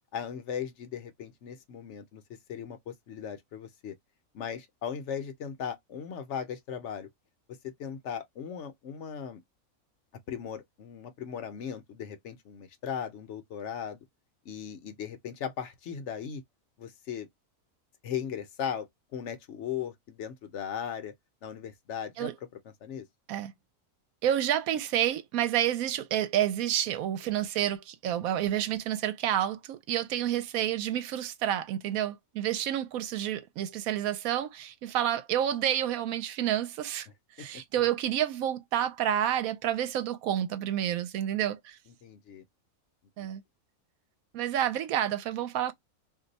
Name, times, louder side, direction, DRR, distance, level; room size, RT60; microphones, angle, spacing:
voice 1, 0.1-2.2 2.5-3.9 4.3-7.1 7.6-9.4 10.3-14.0 14.5-16.4 16.8-17.3 18.0-18.9 19.1-21.1 21.4-22.3 22.8-23.0 37.4-37.5 42.0-42.4 43.2-43.3, left 8 dB, 60° left, 0.9 m, -37 dB
voice 2, 24.2-37.1 37.4-41.8 43.2-43.4 44.3-45.7, right 11 dB, 75° right, 1.0 m, -29 dB
2.6 x 2.2 x 3.9 m
omnidirectional pair, 1.6 m